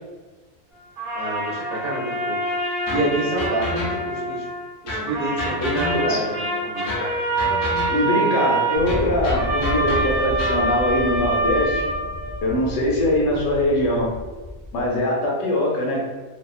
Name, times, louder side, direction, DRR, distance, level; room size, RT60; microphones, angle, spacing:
sound 1, 1.0-4.7 5.1-12.6, right 2 dB, 60° right, 0.7 m, -26 dB
voice 1, 1.1-2.5 2.9-4.5 4.8-6.9, right 2 dB, 85° right, -9 dB, 0.3 m, -27 dB
sound 2, 2.9-4.3 4.9-6.3 6.9-8.2 8.9-10.7, left 1 dB, 65° left, 0.6 m, -30 dB
voice 2, 7.9-11.8 12.4-14.1 14.7-16.0, left 1 dB, 85° left, -2 dB, 1.1 m, -22 dB
sound 3, 8.7-15.0, left 2 dB, 10° left, 0.5 m, -33 dB
2.7 x 2.0 x 2.3 m, 1.3 s
omnidirectional pair, 1.5 m